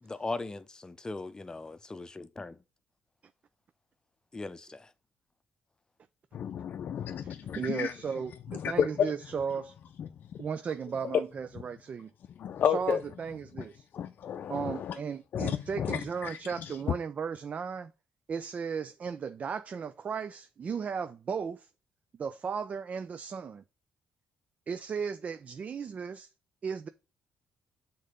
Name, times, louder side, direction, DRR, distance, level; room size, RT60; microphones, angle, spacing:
voice 1, 0.0-2.5 4.3-4.8, left 3 dB, 20° left, 0.7 m, -39 dB
voice 2, 6.3-8.0 8.5-9.1 10.0-10.5 11.0-11.2 12.4-13.0 13.6-13.7 13.9-15.0 15.3-16.8, left 8 dB, 60° left, 0.5 m, -32 dB
voice 3, 7.5-9.7 10.4-12.1 12.7-13.8 14.5-17.9 18.3-21.7 22.2-23.6 24.7-26.3 26.6-26.9, right 6 dB, 45° right, 0.5 m, -35 dB
6.5 x 3.9 x 5.0 m
cardioid pair, 85°, 3 cm